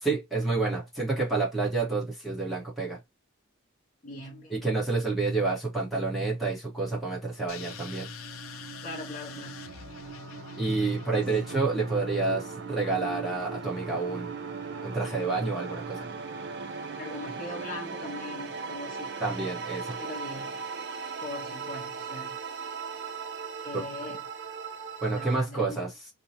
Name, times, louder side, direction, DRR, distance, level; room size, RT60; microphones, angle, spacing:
voice 1, 0.0-3.0 4.5-8.1 10.6-14.4 14.8-16.1 19.2-20.0 23.7-23.8 25.0-25.9, right 3 dB, ahead, 1.0 m, -29 dB
voice 2, 4.0-4.6 8.8-9.6 11.1-11.3 17.0-19.1 20.0-20.6 21.2-22.4 23.6-24.3 25.1-25.8, left 2 dB, 40° left, 0.6 m, -40 dB
sound 1, 7.0-25.4, right 5 dB, 55° right, 0.5 m, -39 dB
sound 2, 7.5-12.2, left 6 dB, 90° left, 0.4 m, -45 dB
2.8 x 2.1 x 2.8 m
head